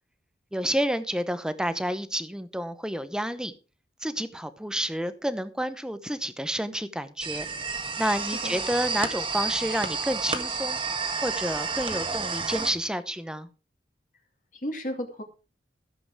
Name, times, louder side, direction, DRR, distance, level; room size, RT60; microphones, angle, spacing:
voice 1, 0.5-3.5 4.0-7.5 8.0-10.8 11.2-13.5, equal, 5° right, 0.8 m, -29 dB
sound 1, 7.2-12.7, right 4 dB, 30° right, 1.5 m, -30 dB
voice 2, 8.2-8.6 14.5-15.2, equal, 45° left, 2.3 m, -34 dB
14.5 x 7.8 x 4.6 m
head